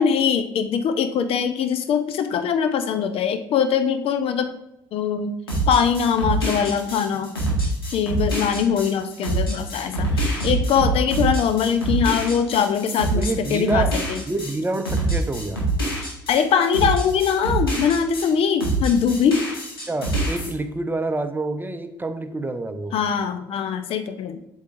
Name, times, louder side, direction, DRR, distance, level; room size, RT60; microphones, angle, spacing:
voice 1, 0.0-4.6 4.9-5.3 5.7-7.3 7.9-14.2 16.3-19.4 22.9-24.4, left 7 dB, 50° left, 9 dB, 0.7 m, -22 dB
sound 1, 5.5-18.3 18.6-20.5, right 2 dB, 85° left, 1.8 m, -25 dB
voice 2, 13.1-14.0 14.3-15.6 19.9-23.0, right 2 dB, 15° right, 8 dB, 0.7 m, -27 dB
8.1 x 6.4 x 2.6 m, 0.85 s
figure-of-eight pair, 50°, 12 cm